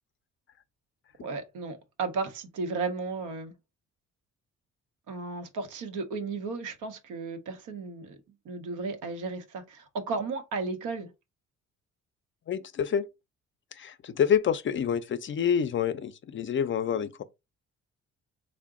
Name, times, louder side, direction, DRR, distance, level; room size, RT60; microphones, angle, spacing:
voice 1, 1.2-3.5 5.1-8.2 8.4-11.1, right 4 dB, 85° right, 0.8 m, -34 dB
voice 2, 12.5-13.1 13.8-17.2, left 8 dB, 40° left, 0.4 m, -27 dB
3.7 x 2.1 x 3.5 m
cardioid pair, 90°, 30 cm